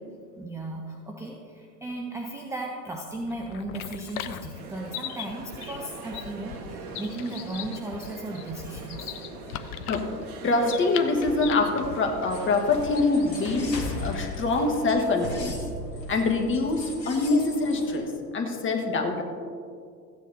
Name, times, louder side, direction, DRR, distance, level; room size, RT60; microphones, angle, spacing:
voice 1, 0.4-9.1, right 2 dB, 5° right, 0 dB, 0.6 m, -36 dB
sound 1, 3.1-13.4, left 10 dB, 60° left, 0.7 m, -40 dB
sound 2, 4.5-14.2, right 3 dB, 60° right, 1.4 m, -42 dB
voice 2, 10.4-15.6 16.1-19.2, left 3 dB, 25° left, 3 dB, 1.4 m, -25 dB
sound 3, 12.3-18.0, left 2 dB, 80° left, 1.5 m, -37 dB
15.0 x 9.3 x 2.7 m, 2.3 s
figure-of-eight pair, 85°, 49 cm